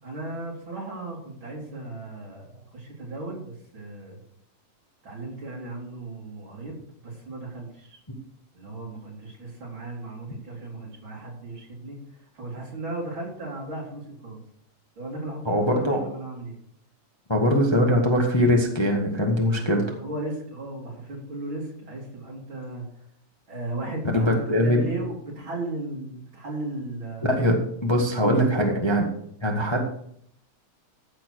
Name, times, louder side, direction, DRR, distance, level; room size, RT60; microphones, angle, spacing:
voice 1, 0.0-4.2 5.0-6.7 7.0-8.0 8.5-14.4 15.0-16.6 19.5-23.0 23.5-27.3 28.2-28.7, right 2 dB, 65° right, -3 dB, 4.8 m, -36 dB
voice 2, 15.4-16.0 17.3-19.8 24.1-24.8 27.2-27.6 27.8-29.0 29.4-29.9, equal, 15° left, 1 dB, 1.4 m, -22 dB
15.0 x 7.5 x 4.7 m, 0.67 s
omnidirectional pair, 2.4 m